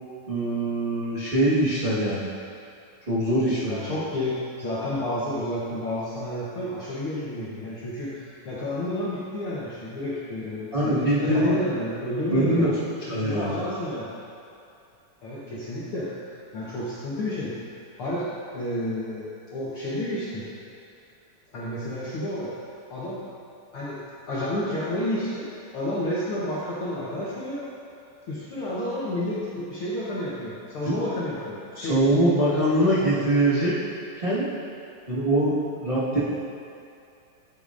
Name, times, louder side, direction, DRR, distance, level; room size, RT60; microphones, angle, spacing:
voice 1, 0.3-2.3 3.1-3.8 10.7-11.5 12.3-12.7 13.1-13.6 30.8-30.9 31.8-33.7 34.2-34.5 35.1-36.2, right 1 dB, 55° right, -12 dB, 0.6 m, -23 dB
voice 2, 3.7-12.7 13.0-14.1 15.2-17.6 18.0-18.3 18.5-20.5 21.5-22.5 22.9-23.2 23.7-25.5 25.7-27.7 28.3-32.0, left 1 dB, 65° left, -9 dB, 1.3 m, -30 dB
11.5 x 8.6 x 2.6 m, 2.6 s
omnidirectional pair, 4.0 m